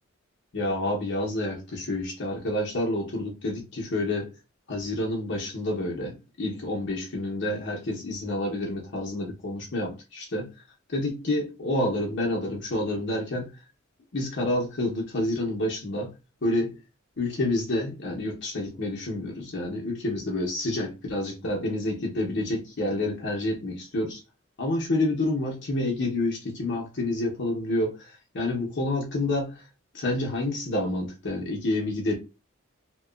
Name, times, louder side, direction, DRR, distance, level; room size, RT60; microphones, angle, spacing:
voice 1, 0.5-4.3 4.7-10.5 10.9-13.5 14.1-16.1 16.4-16.7 17.2-24.2 24.6-29.5 29.9-32.1, left 1 dB, 60° left, 0.8 m, -28 dB
2.9 x 2.3 x 2.3 m
head